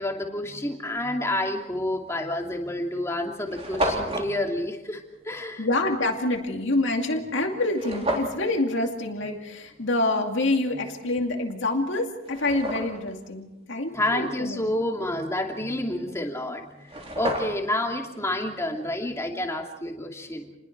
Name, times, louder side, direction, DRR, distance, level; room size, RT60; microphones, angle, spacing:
voice 1, 0.0-5.7 13.9-20.5, left 1 dB, 15° left, 1 dB, 2.6 m, -29 dB
sound 1, 1.9-2.1 2.8-2.9 3.1-3.2 3.4-4.3 7.7-8.4 11.3-11.4 12.0-13.1 16.5-16.6 16.8-17.8, right 1 dB, 30° right, 3.8 m, -30 dB
voice 2, 5.6-14.6, left 2 dB, 60° left, 3 dB, 2.4 m, -26 dB
29.5 x 21.0 x 4.7 m, 0.94 s
head